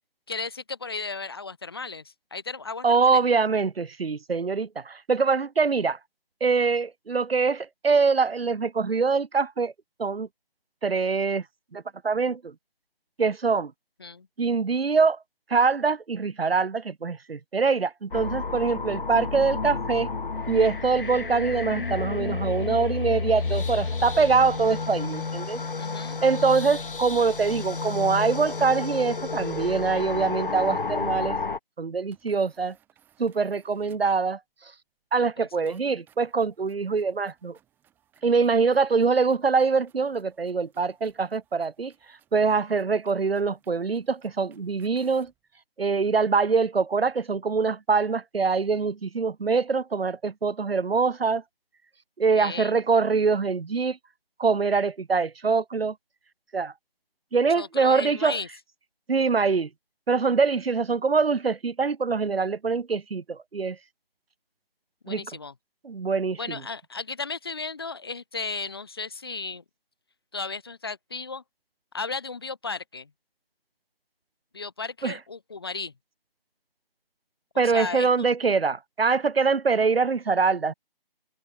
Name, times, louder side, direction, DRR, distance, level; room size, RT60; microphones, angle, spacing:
voice 1, 0.3-3.2 14.0-14.3 25.8-26.2 35.4-35.8 52.3-52.8 57.6-58.5 65.0-65.5 66.4-69.6 70.3-71.4 71.9-73.1 74.5-75.9 77.5-78.3, left 4 dB, 25° left, 0.9 m, -35 dB
voice 2, 2.8-6.0 6.4-9.7 10.0-10.3 10.8-11.4 11.7-12.5 13.2-13.7 14.4-15.2 15.5-20.1 20.5-25.6 26.2-31.4 31.8-32.7 33.2-34.4 35.1-37.6 38.2-41.9 42.3-45.3 45.8-51.4 52.2-54.0 54.4-55.9 56.5-56.7 57.3-58.4 59.1-59.7 60.1-63.8 65.1-65.2 65.8-66.6 75.0-75.2 77.6-80.7, right 4 dB, 75° right, 1.0 m, -24 dB
sound 1, 18.1-31.6, left 4 dB, 65° left, 2.0 m, -31 dB
sound 2, 32.0-34.2 35.6-45.4, right 11 dB, 5° right, 5.2 m, -64 dB
figure-of-eight pair, 165°, 30 cm